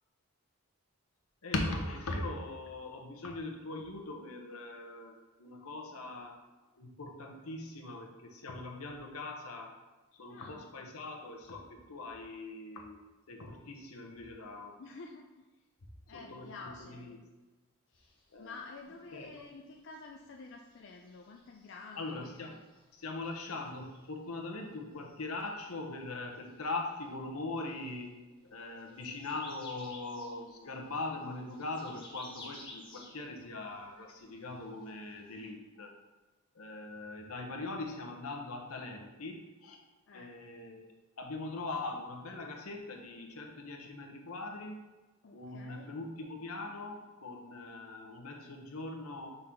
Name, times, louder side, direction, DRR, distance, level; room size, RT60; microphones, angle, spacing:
voice 1, 1.4-6.4 6.8-9.7 10.2-13.0 13.3-14.7 16.1-17.2 18.3-18.5 19.1-19.3 22.0-22.6 22.9-35.9 36.5-39.8 40.1-44.8 45.3-49.3, left 2 dB, 80° left, 3 dB, 0.9 m, -41 dB
voice 2, 10.3-10.7 14.8-15.6 16.1-17.1 17.9-22.5 40.1-40.3 45.2-46.0, left 3 dB, 55° left, 1 dB, 0.4 m, -50 dB
sound 1, 17.9-35.5, left 2 dB, 20° left, 1.4 m, -57 dB
5.5 x 3.9 x 4.4 m, 1.2 s
head